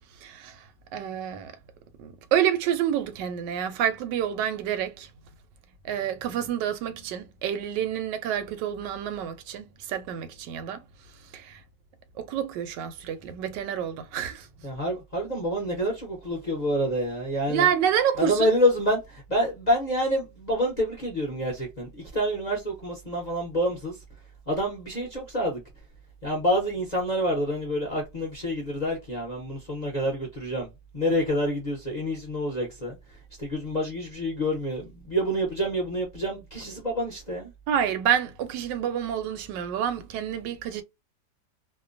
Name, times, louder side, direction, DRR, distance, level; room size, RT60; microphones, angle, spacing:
voice 1, 0.2-0.6 0.9-1.5 2.0-5.1 5.8-10.8 11.3-11.6 12.2-14.5 17.5-18.5 37.7-40.8, right 9 dB, 85° right, 1.2 m, -28 dB
voice 2, 14.6-17.7 18.2-24.0 24.5-25.6 26.2-30.7 30.9-37.5, equal, 45° left, 0.5 m, -27 dB
2.8 x 2.1 x 2.4 m
omnidirectional pair, 1.8 m